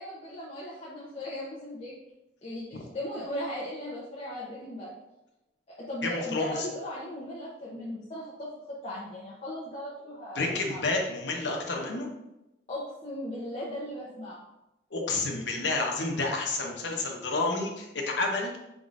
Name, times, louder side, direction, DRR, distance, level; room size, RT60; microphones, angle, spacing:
voice 1, 0.0-1.9 2.4-4.9 5.9-10.8 12.7-14.4, left 1 dB, 35° left, -7 dB, 0.8 m, -37 dB
voice 2, 6.0-6.7 10.3-12.1 14.9-18.6, left 3 dB, 75° left, 1 dB, 0.9 m, -30 dB
5.1 x 3.7 x 2.5 m, 0.91 s
head